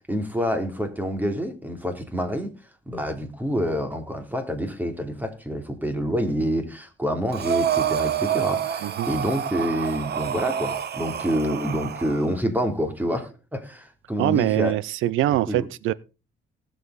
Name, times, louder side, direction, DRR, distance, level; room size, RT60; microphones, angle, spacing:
voice 1, 0.1-2.5 2.9-14.7 15.5-15.7, equal, 10° right, 3.1 m, -27 dB
Breathing, 7.3-12.3, right 9 dB, 55° right, 1.4 m, -27 dB
voice 2, 14.2-15.9, right 14 dB, 85° right, 0.7 m, -23 dB
18.5 x 7.5 x 4.0 m
cardioid pair, 90°, 20 cm